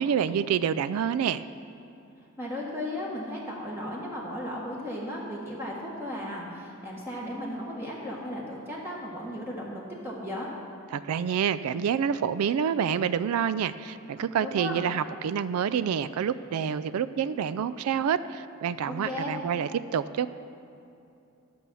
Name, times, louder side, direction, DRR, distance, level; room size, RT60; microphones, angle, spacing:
voice 1, 0.0-1.4 10.9-20.3, right 8 dB, 90° right, 15 dB, 0.3 m, -27 dB
voice 2, 2.4-10.5 14.4-14.9 18.9-19.3, left 1 dB, 10° right, -4 dB, 1.3 m, -35 dB
12.0 x 7.0 x 6.2 m, 2.7 s
head